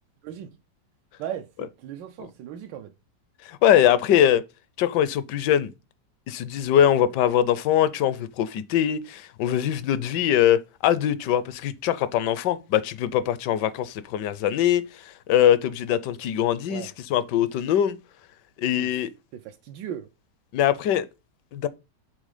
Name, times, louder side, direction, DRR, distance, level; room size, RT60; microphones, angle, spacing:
voice 1, 0.2-0.5 1.2-2.9 16.7-16.9 18.8-18.9 19.3-20.1, right 10 dB, 85° right, 1.3 m, -37 dB
voice 2, 3.4-4.4 4.8-5.7 6.3-18.0 18.6-19.1 20.5-21.0 21.5-21.7, left 10 dB, 75° left, 1.2 m, -22 dB
6.3 x 3.9 x 4.9 m
omnidirectional pair, 1.9 m